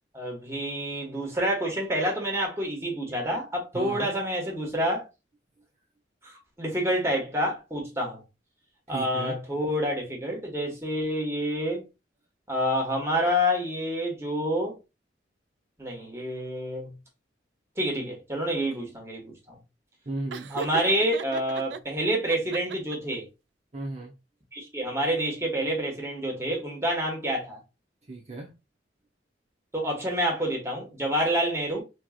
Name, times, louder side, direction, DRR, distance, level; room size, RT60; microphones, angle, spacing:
voice 1, 0.1-5.0 6.2-8.2 8.9-11.8 12.5-14.8 15.8-16.9 17.8-19.6 20.5-23.2 24.5-27.6 29.7-31.8, equal, 15° right, 1.5 m, -28 dB
voice 2, 3.7-4.1 5.6-5.7 8.9-9.4 20.0-20.5 23.7-24.1 28.1-28.6, right 2 dB, 40° right, 0.9 m, -35 dB
Laughter, 20.3-21.8 22.3-23.2, right 5 dB, 75° right, 0.4 m, -37 dB
4.5 x 3.1 x 2.4 m
head